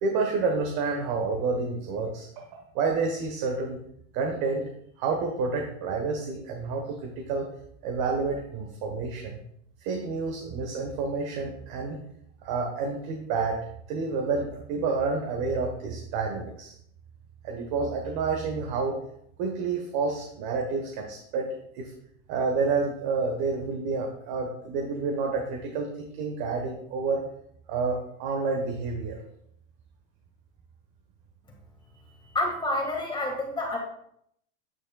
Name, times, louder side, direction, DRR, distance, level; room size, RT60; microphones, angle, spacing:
voice 1, 0.0-3.8 4.1-4.6 5.0-7.5 7.8-9.4 9.8-12.0 12.4-13.6 13.9-16.7 17.4-19.0 19.4-21.5 21.7-21.9 22.3-27.2 27.7-29.2, right 4 dB, 45° right, 2 dB, 1.2 m, -29 dB
voice 2, 32.3-33.8, left 1 dB, 10° left, 0 dB, 1.7 m, -28 dB
9.1 x 6.4 x 2.3 m, 0.71 s
supercardioid pair, 130°, 38 cm